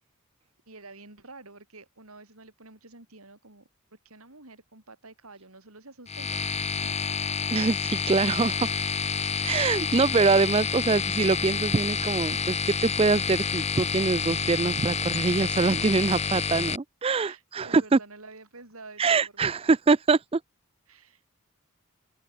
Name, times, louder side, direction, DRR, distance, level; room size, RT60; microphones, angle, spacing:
voice 1, 0.7-6.9 17.2-19.6 20.9-21.2, right 3 dB, 85° right, 5.4 m, -49 dB
sound 1, 6.1-16.8, left 5 dB, 30° left, 1.9 m, -29 dB
voice 2, 7.5-8.7 9.4-18.0 19.0-20.4, right 4 dB, 25° right, 0.4 m, -24 dB
open air
head